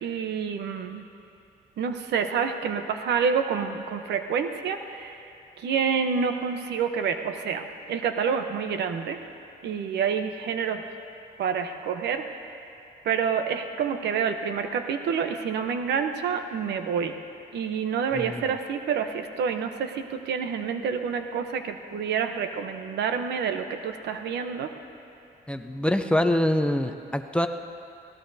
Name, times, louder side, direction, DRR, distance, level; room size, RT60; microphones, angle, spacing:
voice 1, 0.0-1.0 1.8-5.2 5.6-9.2 9.6-10.8 11.4-12.5 13.0-17.1 17.5-24.7, right 6 dB, 75° right, 7 dB, 0.9 m, -28 dB
voice 2, 18.1-18.4 25.5-27.5, left 1 dB, 5° left, 6 dB, 0.6 m, -25 dB
24.5 x 17.5 x 2.8 m, 2.6 s
cardioid pair, 115°, 18 cm